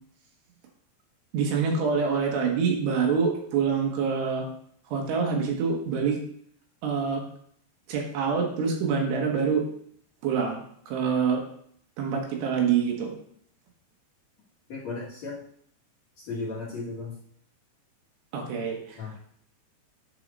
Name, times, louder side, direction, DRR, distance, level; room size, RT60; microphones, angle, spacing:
voice 1, 1.3-4.5 4.9-6.2 6.8-7.2 7.9-9.7 10.2-11.4 12.0-13.1 18.3-19.0, right 6 dB, 75° right, 1 dB, 3.4 m, -26 dB
voice 2, 14.7-15.4 16.2-17.2 19.0-19.2, left 3 dB, 50° left, -7 dB, 2.4 m, -35 dB
9.4 x 4.8 x 5.3 m, 0.66 s
omnidirectional pair, 5.1 m